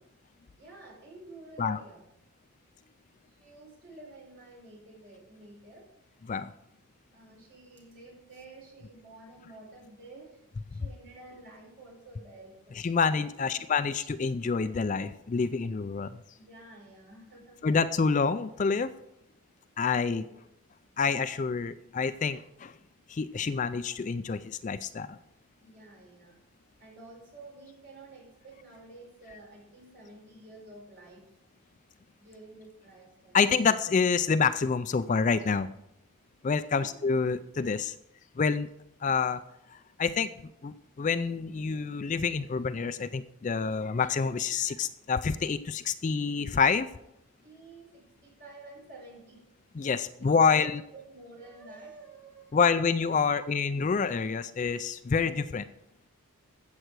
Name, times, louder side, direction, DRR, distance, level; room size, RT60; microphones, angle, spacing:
voice 1, 0.6-2.0 3.3-5.9 7.1-10.4 10.7-12.8 13.5-13.6 16.3-17.6 20.3-20.4 25.6-26.4 26.8-31.4 32.2-33.4 36.6-37.0 47.4-49.4 50.1-53.6, right 2 dB, 50° right, -1 dB, 4.7 m, -50 dB
voice 2, 12.8-16.1 17.6-18.9 19.8-20.2 21.0-22.7 23.1-25.2 33.3-35.7 36.4-37.9 38.4-38.7 39.0-39.4 40.0-40.3 40.6-46.9 49.8-50.8 52.5-55.7, left 5 dB, 35° left, 13 dB, 0.3 m, -27 dB
14.5 x 7.7 x 4.7 m, 0.80 s
head